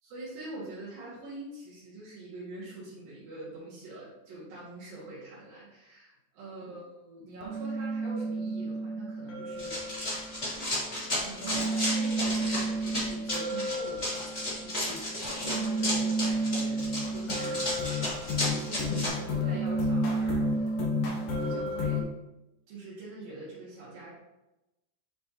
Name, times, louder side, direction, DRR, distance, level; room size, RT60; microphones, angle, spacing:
voice 1, 0.0-9.8 11.1-14.3 14.6-15.1 15.4-22.1 22.7-24.1, right 2 dB, 80° right, -10 dB, 3.4 m, -44 dB
sound 1, 7.4-22.0, equal, 70° left, 1.5 m, -32 dB
Run, 9.6-19.1, left 1 dB, 20° left, 2.0 m, -33 dB
8.5 x 4.2 x 2.9 m, 0.97 s
omnidirectional pair, 4.0 m